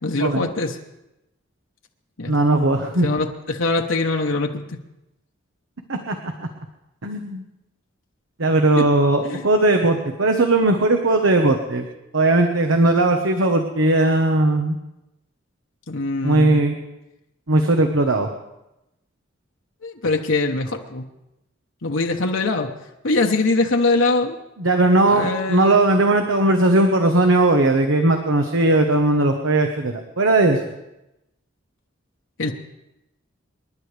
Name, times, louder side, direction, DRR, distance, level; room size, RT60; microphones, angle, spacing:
voice 1, 0.0-0.8 2.2-2.3 3.0-4.6 8.8-8.9 9.2-9.4 15.9-16.6 19.8-21.1 21.8-22.7 23.0-24.4 25.1-25.8 32.4-32.5, left 3 dB, 75° left, 2 dB, 1.1 m, -22 dB
voice 2, 2.3-3.1 5.9-6.1 7.0-7.4 8.4-11.8 12.1-14.8 16.2-16.8 17.5-18.3 24.6-30.6, right 2 dB, 90° right, 4 dB, 1.2 m, -18 dB
27.5 x 11.0 x 3.4 m, 0.92 s
head